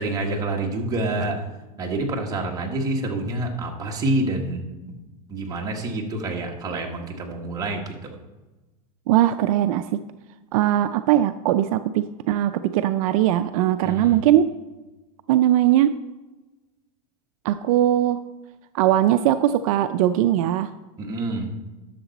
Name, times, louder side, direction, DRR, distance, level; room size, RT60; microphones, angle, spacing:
voice 1, 0.0-1.4 1.8-4.6 5.3-8.2 13.8-14.2 21.0-21.5, right 2 dB, 20° right, -1 dB, 1.5 m, -27 dB
voice 2, 9.1-10.0 10.5-14.5 15.3-16.0 17.4-18.2 18.7-20.7, right 12 dB, 65° right, 10 dB, 0.4 m, -20 dB
11.0 x 6.8 x 4.1 m, 1.1 s
supercardioid pair, 145°, 19 cm